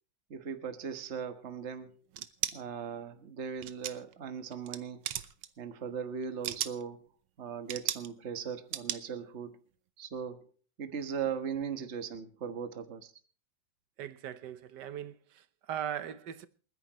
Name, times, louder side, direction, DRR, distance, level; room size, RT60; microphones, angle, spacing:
voice 1, 0.3-2.0 2.5-5.0 5.6-7.1 7.4-9.6 10.0-10.5 10.8-13.1, right 7 dB, 40° right, 1.5 m, -38 dB
sound 1, 2.1-2.6 3.6-4.1 4.5-4.8 5.0-5.5 6.2-6.8 7.7-8.1 8.7-9.0, right 12 dB, 90° right, 1.7 m, -35 dB
voice 2, 14.0-16.5, right 10 dB, 65° right, 1.4 m, -39 dB
28.5 x 10.0 x 3.0 m
omnidirectional pair, 2.2 m